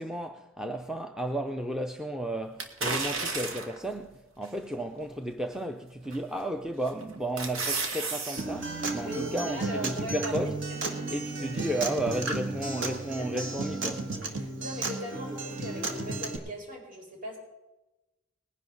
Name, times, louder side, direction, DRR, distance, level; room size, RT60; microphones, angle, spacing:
voice 1, 0.0-10.6 11.1-14.1, right 1 dB, 5° right, 0.5 m, -33 dB
sound 1, 2.6-3.8 4.4-4.5 6.1-6.4 6.9-8.4 8.8-8.9, right 4 dB, 80° right, 1.8 m, -32 dB
Acoustic guitar, 8.4-16.4, right 3 dB, 60° right, 1.6 m, -33 dB
voice 2, 9.0-10.5 13.2-13.4 14.2-17.4, equal, 40° right, 5.0 m, -39 dB
20.0 x 10.5 x 3.9 m
head